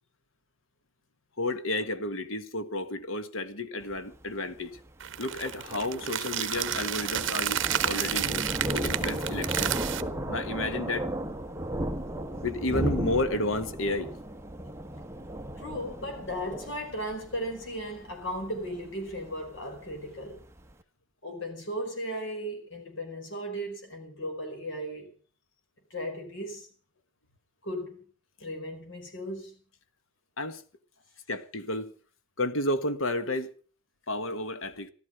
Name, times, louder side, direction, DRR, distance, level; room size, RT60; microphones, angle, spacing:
voice 1, 1.4-4.7 5.2-8.4 8.7-9.7 10.3-11.1 12.4-14.1 30.4-30.6 31.3-31.9 32.4-33.5 34.1-34.9, left 2 dB, 80° left, 1.5 m, -31 dB
Thunder, 3.8-20.7, right 1 dB, 15° right, 1.1 m, -36 dB
sound 1, 5.0-10.0, right 10 dB, 65° right, 0.9 m, -31 dB
voice 2, 15.6-20.4 21.2-25.1 25.9-26.7 27.6-28.0 28.4-29.6, equal, 65° left, 4.9 m, -36 dB
15.0 x 13.0 x 6.6 m
head